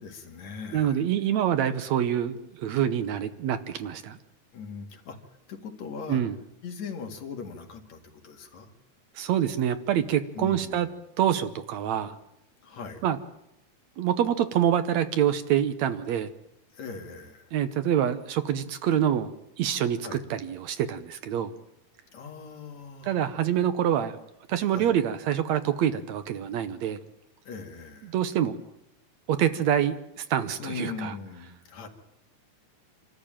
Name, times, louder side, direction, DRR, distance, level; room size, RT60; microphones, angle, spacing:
voice 1, 0.0-1.0 4.5-5.2 5.5-6.2 6.6-8.7 10.3-10.8 12.6-13.1 16.7-17.5 20.0-20.2 22.1-23.2 24.7-24.9 27.4-28.1 30.6-31.9, left 5 dB, 65° left, 3 dB, 3.4 m, -39 dB
voice 2, 0.7-4.2 6.1-6.4 9.2-10.9 11.2-12.1 13.0-13.2 14.0-16.3 17.5-19.3 19.6-21.5 23.0-24.2 24.5-27.0 28.0-28.6 29.3-31.1, right 10 dB, 70° right, 11 dB, 2.1 m, -26 dB
26.5 x 13.5 x 8.9 m, 0.86 s
omnidirectional pair, 3.5 m